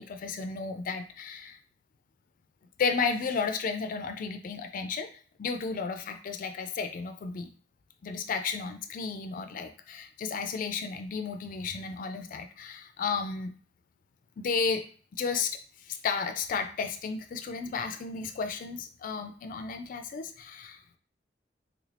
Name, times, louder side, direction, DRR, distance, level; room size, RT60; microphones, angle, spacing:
voice 1, 0.0-1.6 2.8-5.1 5.4-7.5 8.0-13.5 14.4-14.8 15.1-20.8, left 5 dB, 50° left, 8 dB, 0.3 m, -33 dB
3.4 x 2.4 x 3.2 m, 0.43 s
head